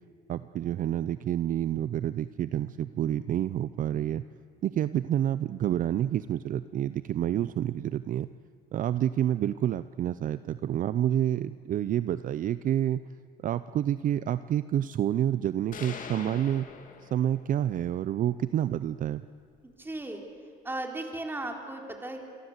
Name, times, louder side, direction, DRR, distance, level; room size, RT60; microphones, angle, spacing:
voice 1, 0.3-4.2 4.6-8.3 8.7-13.0 13.4-16.7 17.1-19.2, right 11 dB, 50° right, 14 dB, 0.6 m, -28 dB
sound 1, 15.7-17.7, left 6 dB, 50° left, 2.7 m, -43 dB
voice 2, 19.6-20.2 20.6-22.2, right 2 dB, 10° right, 3 dB, 4.1 m, -36 dB
28.0 x 23.5 x 8.1 m, 2.3 s
cardioid pair, 110°, 17 cm